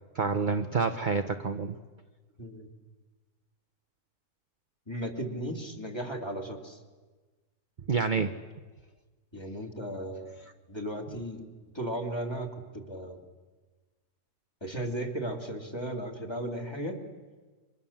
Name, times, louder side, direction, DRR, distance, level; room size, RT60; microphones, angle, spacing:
voice 1, 0.1-1.8 7.9-8.3, right 4 dB, 35° right, 8 dB, 0.8 m, -28 dB
voice 2, 4.9-6.8 9.3-10.4 10.7-11.5 11.7-13.2 14.6-17.0, right 1 dB, 15° left, 3 dB, 2.8 m, -35 dB
29.5 x 24.5 x 7.3 m, 1.3 s
omnidirectional pair, 1.7 m